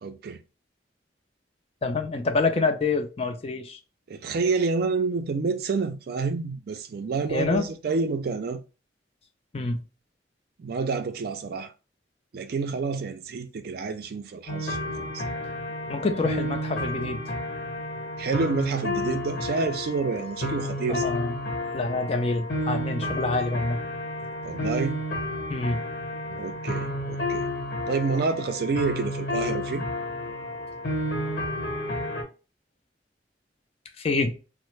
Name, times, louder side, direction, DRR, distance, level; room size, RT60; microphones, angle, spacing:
voice 1, 0.0-0.4 4.1-8.6 10.6-11.7 12.3-15.2 18.2-21.1 24.4-25.0 26.3-27.5 27.9-29.8, right 4 dB, 60° right, 0.4 m, -28 dB
voice 2, 1.8-3.8 7.3-7.7 9.5-9.8 15.9-17.2 20.9-21.3 21.7-23.8 25.5-25.9 34.0-34.4, left 3 dB, 35° left, 0.4 m, -27 dB
sound 1, 14.5-32.2, left 1 dB, 65° left, 1.0 m, -31 dB
3.2 x 2.0 x 3.1 m
head